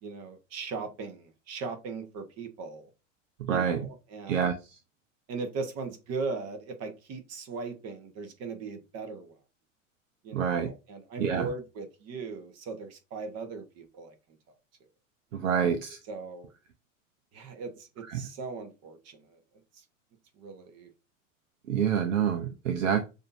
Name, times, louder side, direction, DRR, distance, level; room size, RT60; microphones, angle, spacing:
voice 1, 0.0-2.9 3.5-4.6 5.3-9.4 10.2-14.1 15.3-15.5 16.1-16.5 17.3-19.4 19.7-19.8 20.4-20.9, right 4 dB, 40° right, 8 dB, 1.1 m, -39 dB
voice 2, 3.5-3.8 4.3-4.5 10.3-10.7 11.2-11.5 15.3-16.0 18.1-18.2 21.7-23.0, right 8 dB, 75° right, 7 dB, 0.8 m, -27 dB
6.5 x 2.7 x 2.6 m, 0.28 s
hypercardioid pair, 90°, 39 cm